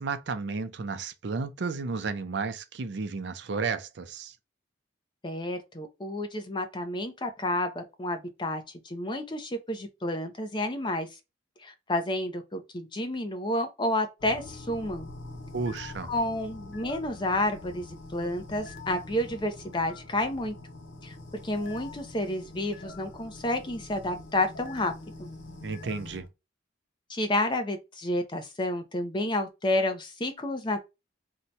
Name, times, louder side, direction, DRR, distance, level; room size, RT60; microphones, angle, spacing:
voice 1, 0.0-4.3 15.5-16.1 25.6-26.2, right 4 dB, 65° right, 0.5 m, -32 dB
voice 2, 5.2-11.1 11.6-15.1 16.1-17.9 18.1-20.5 21.0-21.2 21.4-24.9 25.2-25.3 27.1-30.9, left 1 dB, 25° left, 0.6 m, -30 dB
sound 1, 14.2-26.3, left 2 dB, 75° left, 0.7 m, -44 dB
2.8 x 2.2 x 3.9 m
head